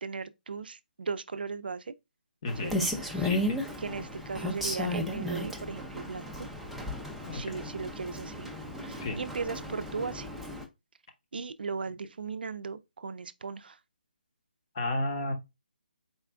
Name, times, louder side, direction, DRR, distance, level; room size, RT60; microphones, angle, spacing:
voice 1, 0.0-1.9 2.6-2.7 3.0-3.5 3.8-6.5 7.3-8.5 8.8-10.3 11.3-13.8, right 5 dB, 70° right, 0.4 m, -37 dB
voice 2, 2.4-2.8 3.2-3.6 7.2-7.7 9.0-9.2 14.7-15.3, left 2 dB, 35° left, 0.9 m, -33 dB
Rain, 2.5-10.6, left 1 dB, ahead, 0.4 m, -34 dB
4.2 x 2.3 x 3.4 m
hypercardioid pair, 160°, 5 cm